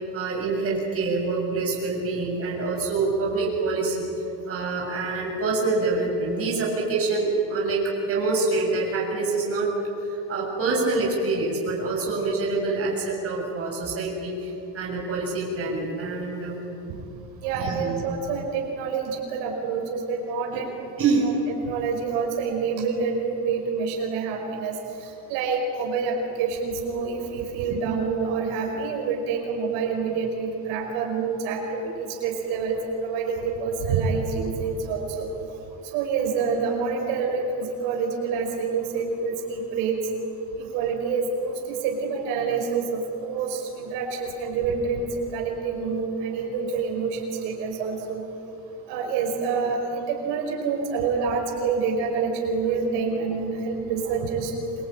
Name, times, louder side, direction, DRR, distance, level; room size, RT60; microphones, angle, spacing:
voice 1, 0.1-4.1 4.4-9.7 10.1-16.6 17.6-17.9 21.0-21.3, right 3 dB, 30° right, -2 dB, 7.5 m, -26 dB
voice 2, 17.4-20.9 21.2-21.3 21.6-24.8 25.0-35.3 35.9-40.0 40.6-48.2 48.9-54.5, right 5 dB, 85° right, 1 dB, 5.3 m, -27 dB
26.5 x 23.5 x 9.1 m, 2.8 s
cardioid pair, 160°, 46 cm